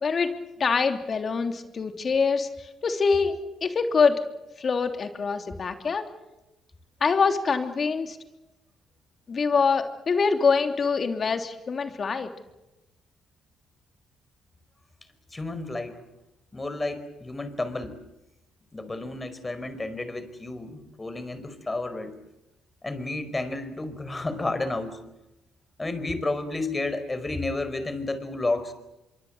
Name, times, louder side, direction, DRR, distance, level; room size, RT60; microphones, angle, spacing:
voice 1, 0.0-2.5 2.8-4.2 4.6-6.0 7.0-8.2 9.3-12.3, left 5 dB, 45° left, 6 dB, 3.2 m, -24 dB
voice 2, 15.3-16.0 16.5-18.0 18.7-22.1 22.8-25.0 25.8-28.7, left 2 dB, 20° left, 12 dB, 4.7 m, -31 dB
25.5 x 23.5 x 8.1 m, 0.97 s
supercardioid pair, 75°, 0 cm